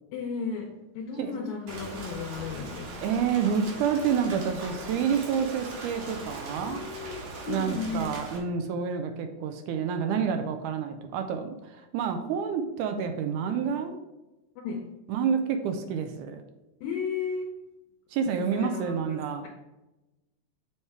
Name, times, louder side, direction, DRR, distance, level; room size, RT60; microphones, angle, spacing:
voice 1, 0.1-3.2 6.6-7.2 7.4-8.1 14.6-14.9 16.8-17.5 18.4-19.5, left 5 dB, 75° left, -1 dB, 1.9 m, -34 dB
Rain, 1.7-8.4, right 3 dB, 65° right, 2.7 m, -40 dB
voice 2, 3.0-6.8 7.5-14.0 15.1-16.4 18.1-19.5, right 7 dB, 85° right, 6 dB, 2.0 m, -28 dB
7.2 x 3.3 x 4.6 m, 1.0 s
omnidirectional pair, 3.6 m